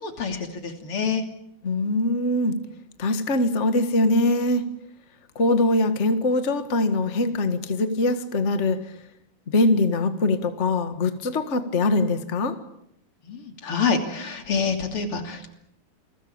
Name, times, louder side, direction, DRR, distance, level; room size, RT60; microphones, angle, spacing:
voice 1, 0.0-1.2 13.2-15.5, left 5 dB, 40° left, 5 dB, 3.5 m, -27 dB
voice 2, 1.6-2.6 3.0-4.6 5.3-8.8 9.5-12.6, left 2 dB, 55° left, 9 dB, 0.7 m, -22 dB
29.0 x 21.5 x 8.8 m, 0.75 s
omnidirectional pair, 4.3 m